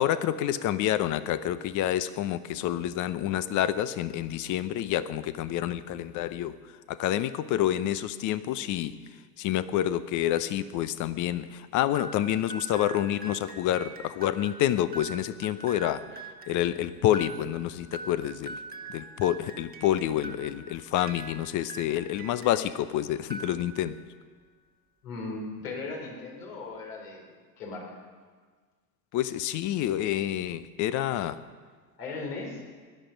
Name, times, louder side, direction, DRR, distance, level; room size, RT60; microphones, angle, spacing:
voice 1, 0.0-6.6 6.9-8.9 9.4-16.0 16.5-18.6 18.9-24.0 29.1-31.4, left 12 dB, 40° left, 14 dB, 0.8 m, -28 dB
sound 1, 11.9-22.8 23.2-24.0, right 3 dB, 20° right, 1.3 m, -44 dB
voice 2, 25.0-28.0 32.0-32.6, left 3 dB, 75° left, 0 dB, 4.5 m, -38 dB
18.5 x 11.5 x 5.3 m, 1.5 s
hypercardioid pair, 90°, 47 cm